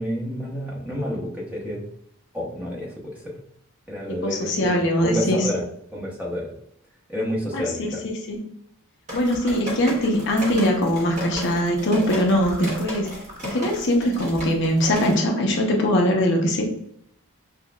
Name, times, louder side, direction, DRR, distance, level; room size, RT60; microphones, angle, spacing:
voice 1, 0.0-1.8 2.3-3.2 3.9-5.6 5.9-6.5 7.1-8.0, equal, 5° right, -4 dB, 0.9 m, -29 dB
voice 2, 4.2-5.4 7.5-7.6 8.0-8.4 9.1-13.1 13.4-16.6, equal, 50° left, 0 dB, 0.7 m, -21 dB
sound 1, 9.1-15.2, equal, 30° right, 1.1 m, -34 dB
6.0 x 2.3 x 2.3 m, 0.71 s
head